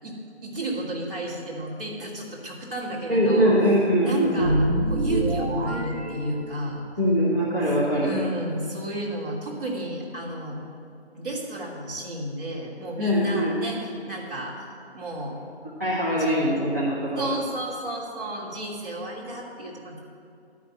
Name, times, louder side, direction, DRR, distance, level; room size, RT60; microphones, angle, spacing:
voice 1, 0.0-3.6 4.0-4.6 4.9-6.8 8.0-10.6 11.1-14.5 14.9-15.4 16.1-16.6 17.1-20.0, right 1 dB, 55° right, -4 dB, 3.0 m, -32 dB
voice 2, 3.1-4.5 7.0-8.2 13.0-13.6 15.8-17.3, equal, 15° right, -11 dB, 1.3 m, -22 dB
sound 1, 4.3-6.9, right 1 dB, 85° right, 1.5 m, -26 dB
12.0 x 6.0 x 7.9 m, 2.5 s
figure-of-eight pair, 170°, 33 cm